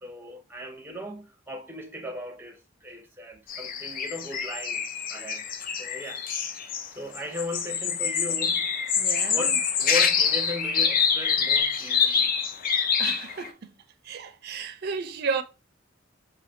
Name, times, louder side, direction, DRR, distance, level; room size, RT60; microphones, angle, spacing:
voice 1, 0.0-5.5 5.8-6.2 6.9-8.7 9.3-12.4, left 1 dB, 10° right, 0.7 m, -37 dB
sound 1, 3.5-6.9 7.1-13.5, left 6 dB, 45° left, 0.4 m, -26 dB
voice 2, 8.9-9.6 13.0-13.7 14.0-15.4, right 5 dB, 55° right, 0.4 m, -33 dB
4.0 x 2.7 x 3.0 m
head